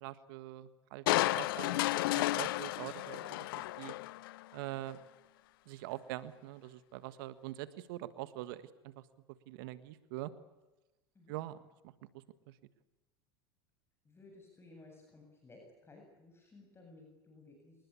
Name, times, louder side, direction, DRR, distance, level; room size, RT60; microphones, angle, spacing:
voice 1, 0.0-3.5 3.8-3.9 4.5-5.0 5.7-8.9 9.5-10.3 11.3-11.6 11.8-12.5, right 15 dB, 70° right, 14 dB, 1.6 m, -44 dB
Crushing, 1.1-4.4 4.9-5.0, left 18 dB, 75° left, 0.8 m, -32 dB
voice 2, 14.0-17.8, left 2 dB, 20° left, 1 dB, 7.9 m, -57 dB
27.5 x 20.0 x 8.4 m, 1.1 s
hypercardioid pair, 90°, 12 cm